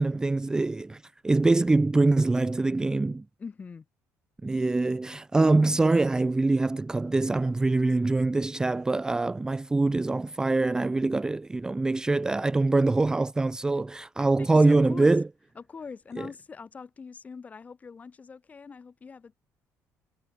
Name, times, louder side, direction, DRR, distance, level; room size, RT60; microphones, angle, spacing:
voice 1, 0.0-3.2 4.4-15.2, right 3 dB, 10° right, 0.5 m, -24 dB
voice 2, 3.4-3.9 14.4-15.1 15.6-19.3, left 5 dB, 25° left, 2.4 m, -43 dB
cardioid pair, 135°, 6 cm